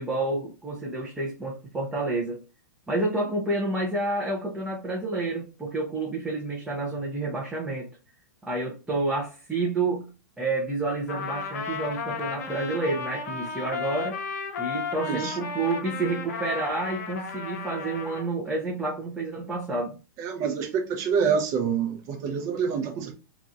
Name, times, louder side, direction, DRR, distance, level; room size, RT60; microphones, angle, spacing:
voice 1, 0.0-2.4 2.9-7.9 8.4-10.0 10.4-14.2 14.6-19.9, right 2 dB, 5° right, 0.6 m, -29 dB
Trumpet, 11.1-18.3, left 5 dB, 60° left, 0.7 m, -34 dB
voice 2, 15.0-15.4 20.2-23.1, right 6 dB, 35° right, 0.8 m, -27 dB
2.9 x 2.4 x 2.6 m
hypercardioid pair, 135°, 10 cm